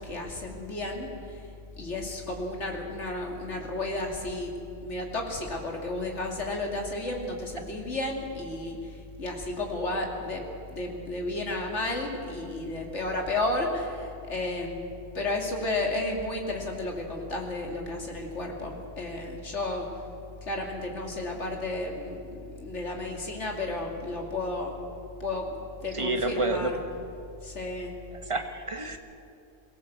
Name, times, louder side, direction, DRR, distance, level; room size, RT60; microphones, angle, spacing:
voice 1, 0.0-1.4 1.8-4.5 4.8-8.8 9.2-10.4 10.7-14.8 15.1-19.9 20.5-24.7 25.2-26.8 27.4-27.9, left 2 dB, 65° left, 1 dB, 3.1 m, -32 dB
voice 2, 25.9-26.7 28.3-29.0, right 2 dB, 25° right, 5 dB, 1.6 m, -29 dB
22.5 x 17.0 x 8.1 m, 2.5 s
omnidirectional pair, 1.3 m